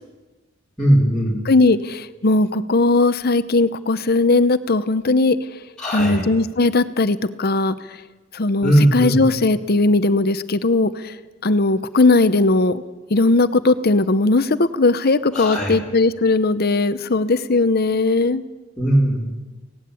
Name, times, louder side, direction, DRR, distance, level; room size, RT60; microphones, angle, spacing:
voice 1, 0.8-1.4 5.8-6.3 8.6-9.2 15.3-15.7 18.8-19.3, right 1 dB, 5° left, -7 dB, 4.0 m, -18 dB
voice 2, 1.5-5.4 5.9-7.8 8.3-10.9 11.4-12.8 13.1-18.4, left 3 dB, 55° left, 13 dB, 0.8 m, -18 dB
19.0 x 17.5 x 8.4 m, 1.2 s
head